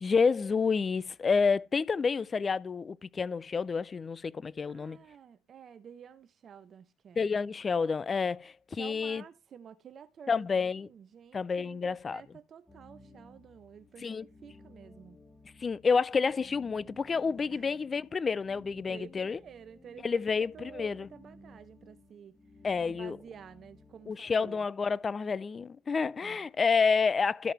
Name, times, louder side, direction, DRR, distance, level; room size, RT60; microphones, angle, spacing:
voice 1, 0.0-5.0 7.2-9.2 10.3-10.9 11.3-12.2 14.0-14.2 15.6-19.4 20.0-21.1 22.6-23.2 24.1-27.5, left 5 dB, 30° left, 0.4 m, -29 dB
voice 2, 4.7-7.3 8.7-15.2 17.5-17.6 18.8-22.4 22.9-24.7 26.2-26.5, right 8 dB, 45° right, 0.7 m, -51 dB
sound 1, 12.7-24.4, left 1 dB, 10° left, 1.2 m, -56 dB
13.5 x 5.6 x 3.3 m
supercardioid pair, 85°, 0 cm